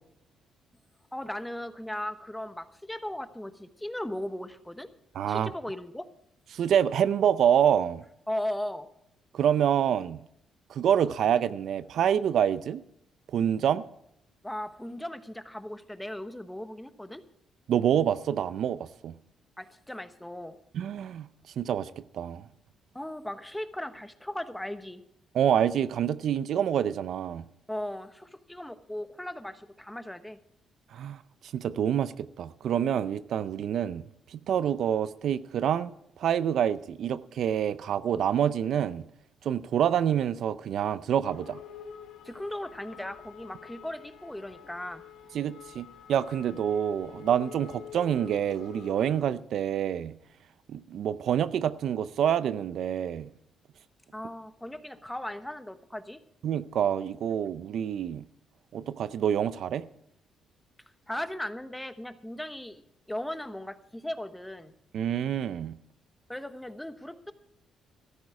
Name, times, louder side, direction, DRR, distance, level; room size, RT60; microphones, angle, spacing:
voice 1, 1.1-4.9 5.3-6.1 8.3-8.9 14.4-17.2 19.6-20.6 22.9-25.0 27.7-30.4 42.2-45.0 54.1-56.2 61.1-62.8 63.1-64.7 66.3-67.3, left 1 dB, 5° left, 1.1 m, -37 dB
voice 2, 5.1-5.5 6.5-8.0 9.3-10.2 10.7-12.8 13.3-13.8 17.7-19.1 20.7-21.3 21.6-22.4 25.3-27.4 30.9-31.2 31.5-34.0 34.3-39.0 39.4-41.6 45.3-50.2 50.7-53.3 56.4-58.2 58.7-59.8 64.9-65.8, right 9 dB, 70° right, 0.5 m, -27 dB
sound 1, 41.2-49.2, left 8 dB, 80° left, 1.4 m, -47 dB
14.0 x 13.0 x 4.8 m
cardioid pair, 90°, 0 cm